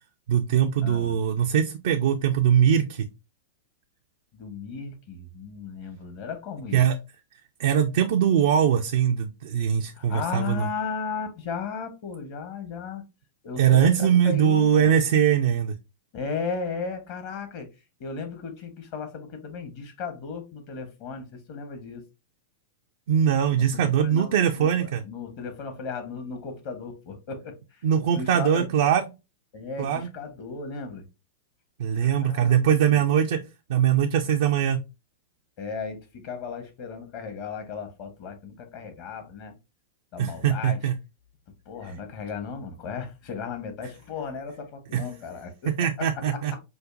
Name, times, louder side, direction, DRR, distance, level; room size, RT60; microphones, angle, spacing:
voice 1, 0.3-3.0 6.7-6.9 7.6-10.7 13.6-15.7 23.1-25.0 27.8-29.1 29.8-30.1 31.8-33.4 33.7-34.8 40.2-40.9 44.9-45.0 45.8-46.5, right 9 dB, 65° right, 0.4 m, -21 dB
voice 2, 0.8-1.2 4.3-6.8 10.0-13.0 13.4-15.0 16.1-17.7 18.0-22.0 23.5-27.8 28.1-28.7 29.5-31.1 32.0-33.1 35.6-39.5 40.1-40.8 41.6-45.7 46.0-46.4, left 5 dB, 50° left, 1.1 m, -35 dB
5.1 x 2.1 x 2.5 m
hypercardioid pair, 105°, 0 cm